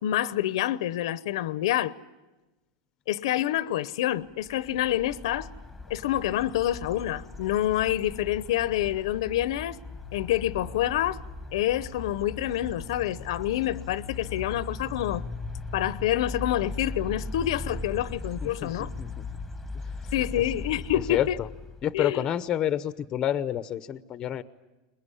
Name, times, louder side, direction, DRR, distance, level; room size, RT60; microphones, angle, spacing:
voice 1, 0.0-1.9 3.1-5.5 5.9-9.8 10.1-11.2 11.5-15.2 15.7-18.9 20.1-21.4 21.9-22.3, left 13 dB, 75° left, 0.8 m, -27 dB
sound 1, 4.4-22.0, left 3 dB, 5° left, 1.3 m, -39 dB
voice 2, 18.4-19.2 21.1-21.5 21.8-24.4, left 10 dB, 25° left, 0.8 m, -29 dB
23.0 x 21.0 x 9.9 m
supercardioid pair, 155°, 3 cm